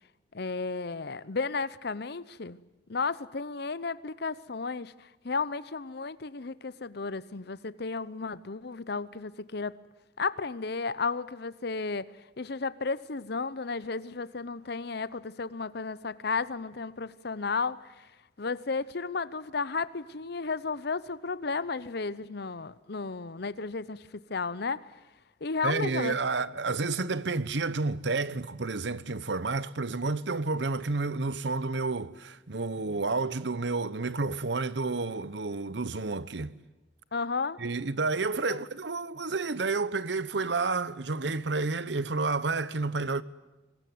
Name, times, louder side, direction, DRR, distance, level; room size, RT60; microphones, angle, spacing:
voice 1, 0.3-2.6 2.9-9.8 10.2-12.1 12.4-17.9 18.4-24.0 24.3-24.8 25.4-26.2 37.1-37.6 38.5-38.6, left 4 dB, 60° left, 0.8 m, -33 dB
voice 2, 25.6-36.5 37.6-43.2, right 3 dB, 70° right, 1.0 m, -30 dB
23.5 x 21.0 x 9.5 m
head